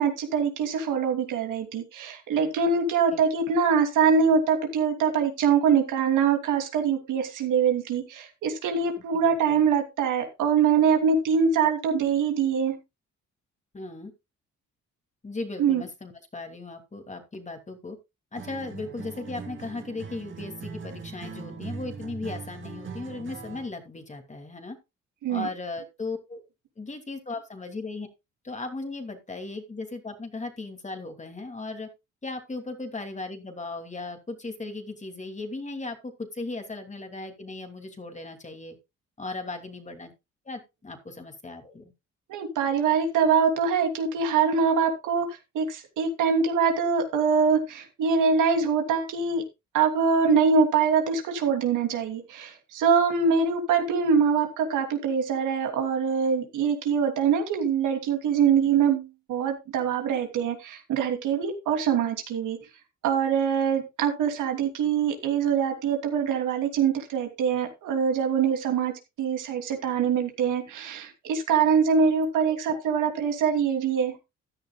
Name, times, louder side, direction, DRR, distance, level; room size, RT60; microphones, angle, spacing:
voice 1, 0.0-12.7 15.6-15.8 25.2-25.5 42.3-45.3 45.5-49.4 49.7-62.6 63.0-68.9 69.2-74.1, right 6 dB, 85° right, 5 dB, 2.9 m, -24 dB
voice 2, 9.1-9.6 13.7-14.1 15.2-18.0 18.3-24.8 25.3-26.4 26.8-28.1 28.4-31.9 32.2-38.8 39.2-40.1 40.4-41.9 72.5-72.8, left 3 dB, 25° left, 6 dB, 2.8 m, -37 dB
Acoustic guitar, 18.4-23.8, right 5 dB, 40° right, 2.3 m, -40 dB
15.0 x 10.5 x 2.3 m, 0.24 s
cardioid pair, 90°, 30 cm